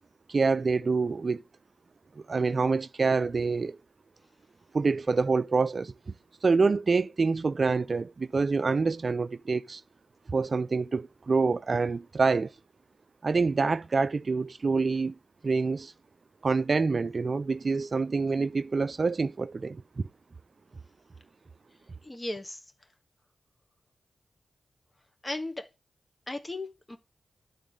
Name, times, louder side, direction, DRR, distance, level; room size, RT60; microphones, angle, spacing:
voice 1, 0.3-1.4 2.2-3.8 4.7-5.9 6.4-9.8 10.3-12.5 13.2-15.1 15.4-15.9 16.4-20.0, right 4 dB, 55° right, 0.4 m, -26 dB
voice 2, 22.0-22.6 25.2-25.7 26.3-27.0, left 2 dB, 25° left, 1.5 m, -36 dB
11.0 x 4.0 x 5.1 m
supercardioid pair, 40°, 0 cm